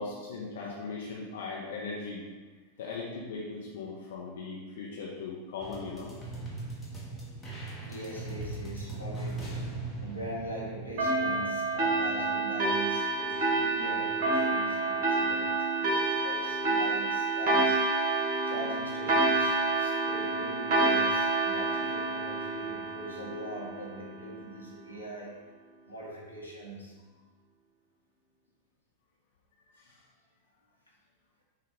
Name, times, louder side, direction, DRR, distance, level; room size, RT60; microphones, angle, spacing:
voice 1, 0.0-2.2 2.8-6.1 29.8-30.0, left 4 dB, 60° left, -4 dB, 0.7 m, -38 dB
sound 1, 5.6-12.1, right 2 dB, 10° left, 1.1 m, -40 dB
voice 2, 7.8-17.9 18.4-25.4 25.9-27.0, right 1 dB, 85° left, -5 dB, 1.0 m, -41 dB
sound 2, 11.0-24.1, right 3 dB, 40° right, 1.3 m, -28 dB
5.8 x 2.3 x 3.6 m, 1.3 s
figure-of-eight pair, 90°, 0 cm